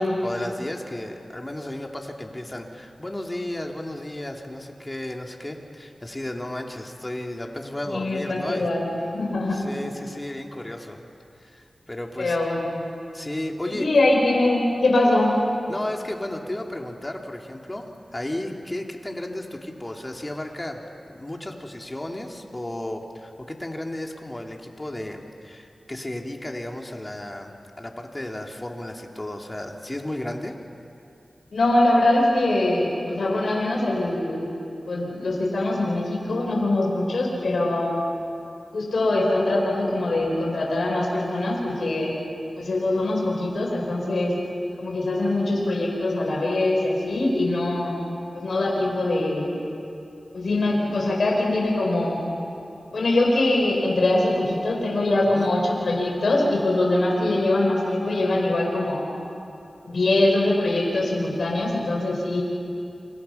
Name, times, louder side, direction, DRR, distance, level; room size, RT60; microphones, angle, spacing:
voice 1, 0.2-8.7 9.5-11.1 11.4-12.4 13.1-13.9 15.7-17.8 18.1-20.8 21.1-27.5 27.8-30.5 55.3-55.5, left 1 dB, 25° left, 1 dB, 3.4 m, -33 dB
voice 2, 7.9-8.9 9.1-9.6 12.2-12.8 13.7-15.4 31.5-34.5 34.9-38.0 38.7-42.1 42.6-44.3 44.8-47.9 48.3-49.6 50.3-52.2 52.9-59.0 59.8-62.4, left 2 dB, 80° left, -1 dB, 5.1 m, -23 dB
29.0 x 27.5 x 6.0 m, 2.8 s
cardioid pair, 45°, 0 cm